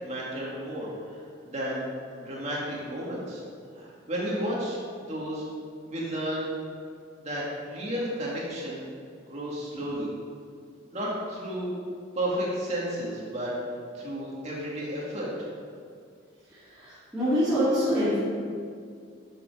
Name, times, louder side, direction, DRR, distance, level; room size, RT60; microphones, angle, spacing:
voice 1, 0.0-1.2 1.4-1.8 2.1-3.4 3.7-4.8 5.1-5.4 5.9-6.5 7.2-8.8 9.2-10.1 10.9-11.8 12.2-13.5 13.9-15.5, equal, 35° right, -5 dB, 2.3 m, -32 dB
voice 2, 16.8-18.2, equal, 5° right, -14 dB, 2.6 m, -25 dB
12.0 x 6.9 x 5.0 m, 2.2 s
head